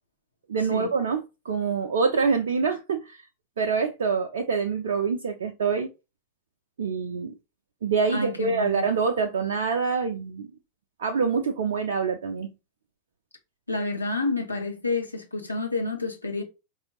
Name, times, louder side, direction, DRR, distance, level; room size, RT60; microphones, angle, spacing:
voice 1, 0.5-3.2 3.6-5.9 6.8-7.3 7.8-10.5 11.0-12.5, right 5 dB, 60° right, 0.5 m, -26 dB
voice 2, 8.1-8.8 13.7-16.4, left 3 dB, 85° left, 1.0 m, -29 dB
4.8 x 2.7 x 2.9 m
figure-of-eight pair, 90°, 0 cm